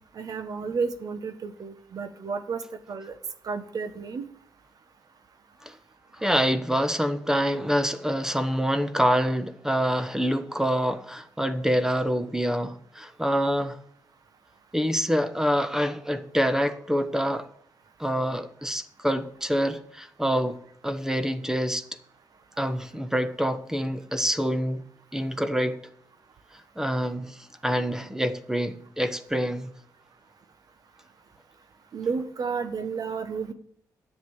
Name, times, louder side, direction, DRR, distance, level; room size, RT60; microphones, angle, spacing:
voice 1, 0.2-2.6 2.9-3.1 3.4-4.3 31.9-33.5, right 5 dB, 60° right, 1.3 m, -31 dB
voice 2, 6.2-13.8 14.7-17.5 18.0-20.6 20.8-21.8 22.6-24.8 25.1-25.8 26.8-29.7, equal, 5° right, 1.2 m, -26 dB
10.5 x 7.9 x 7.1 m
cardioid pair, 85°, 7 cm